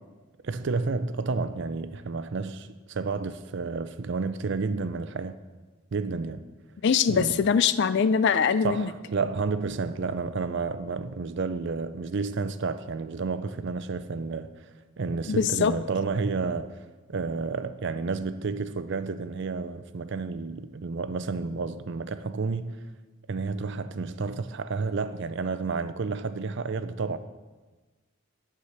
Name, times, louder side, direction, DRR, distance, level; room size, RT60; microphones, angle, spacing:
voice 1, 0.4-5.4 5.9-6.5 7.1-7.4 8.6-14.7 15.0-16.7 17.1-22.8 23.3-27.2, right 4 dB, 55° right, 0.5 m, -31 dB
voice 2, 6.8-8.9 15.3-15.7, left 6 dB, 50° left, 0.3 m, -22 dB
9.3 x 4.9 x 7.2 m
head